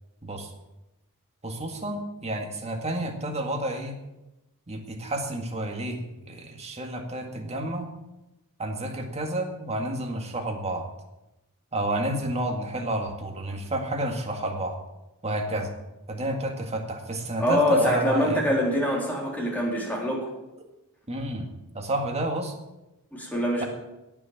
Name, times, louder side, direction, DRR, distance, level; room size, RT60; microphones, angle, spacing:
voice 1, 1.4-4.0 4.7-7.9 8.6-10.8 11.7-14.8 15.2-15.7 16.1-18.4 21.1-22.5 23.6-23.7, right 1 dB, 30° right, 3 dB, 1.9 m, -30 dB
voice 2, 17.4-20.3 23.1-23.7, equal, 10° left, -3 dB, 3.9 m, -24 dB
17.5 x 6.3 x 7.5 m, 0.97 s
head